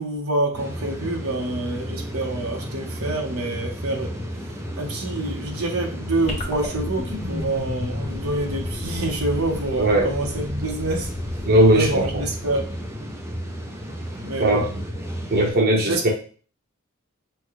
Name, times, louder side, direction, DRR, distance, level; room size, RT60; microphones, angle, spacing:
voice 1, 0.0-4.1 4.8-11.1 11.7-12.6 14.2-14.6 15.8-16.1, right 2 dB, 80° right, 1 dB, 1.1 m, -27 dB
sound 1, 0.5-15.5, equal, 10° right, 0.6 m, -33 dB
sound 2, 6.3-12.8, left 2 dB, 30° left, 1.3 m, -34 dB
voice 2, 9.8-10.1 11.4-12.1 14.4-14.8 15.3-16.1, right 1 dB, 45° right, -1 dB, 1.0 m, -18 dB
6.2 x 2.3 x 3.2 m, 0.40 s
head